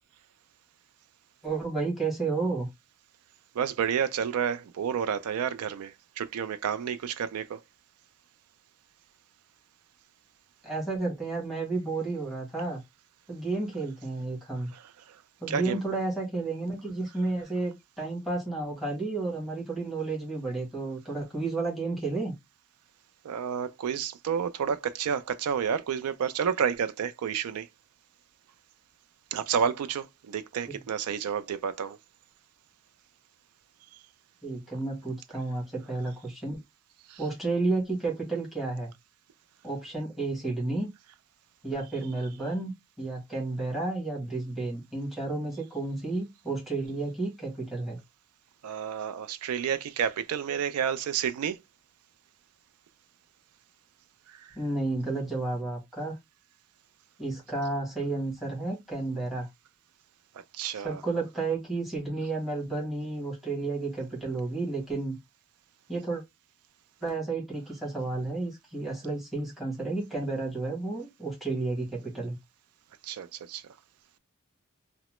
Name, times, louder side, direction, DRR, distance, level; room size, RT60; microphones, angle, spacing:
voice 1, 1.4-2.7 10.6-12.8 13.3-14.7 15.4-22.3 30.7-30.8 34.4-36.6 37.2-38.9 39.6-40.9 41.6-42.7 43.0-48.0 54.5-56.2 57.2-59.5 60.8-65.2 65.9-66.2 67.0-72.4, right 3 dB, ahead, 1.2 m, -31 dB
voice 2, 3.5-7.6 14.7-14.8 15.1-15.2 15.5-15.8 23.2-27.7 29.3-32.0 37.1-37.2 48.6-51.6 54.3-54.6 60.5-61.0 73.0-73.6, right 7 dB, 85° right, 0.3 m, -30 dB
2.8 x 2.1 x 3.0 m
head